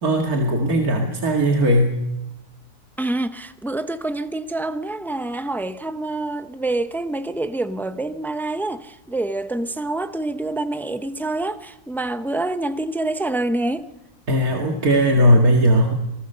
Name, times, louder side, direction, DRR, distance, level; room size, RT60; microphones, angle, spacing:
voice 1, 0.0-1.9 14.3-15.9, equal, 90° right, 2.6 m, -18 dB
voice 2, 3.0-13.9, right 2 dB, ahead, 0.6 m, -26 dB
26.5 x 19.5 x 6.8 m
omnidirectional pair, 1.5 m